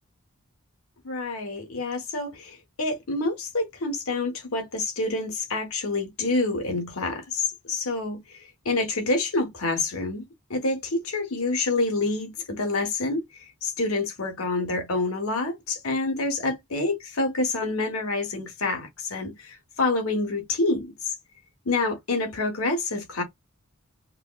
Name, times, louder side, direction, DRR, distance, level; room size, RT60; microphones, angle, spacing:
voice 1, 1.0-8.2 8.6-10.2 10.5-13.2 13.6-20.9 21.6-23.2, left 3 dB, 75° left, 1.2 m, -27 dB
4.6 x 2.0 x 2.2 m
head